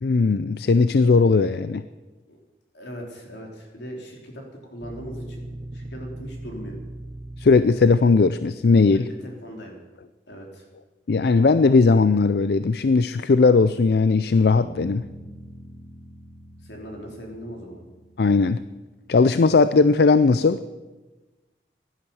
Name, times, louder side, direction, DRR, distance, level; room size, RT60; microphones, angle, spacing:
voice 1, 0.0-1.8 7.4-9.0 11.1-15.0 18.2-18.6 19.1-20.6, left 4 dB, 65° left, 13 dB, 0.4 m, -18 dB
voice 2, 2.7-5.5 5.7-6.8 8.9-9.8 10.3-10.7 16.6-17.8, equal, 90° left, 1 dB, 3.8 m, -39 dB
sound 1, 4.8-8.2, right 1 dB, 35° right, 0.8 m, -38 dB
sound 2, 14.6-18.9, right 1 dB, 30° left, 3.5 m, -45 dB
15.5 x 11.5 x 7.2 m, 1.2 s
head